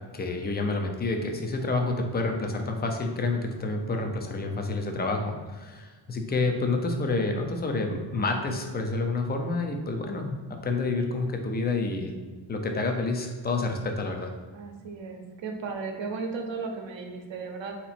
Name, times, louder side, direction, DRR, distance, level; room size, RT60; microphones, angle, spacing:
voice 1, 0.1-12.2 12.5-14.3, left 3 dB, 20° left, 4 dB, 0.4 m, -29 dB
voice 2, 14.5-17.8, right 4 dB, 65° right, 3 dB, 0.8 m, -35 dB
3.8 x 2.9 x 4.2 m, 1.4 s
wide cardioid pair, 140°, 49 cm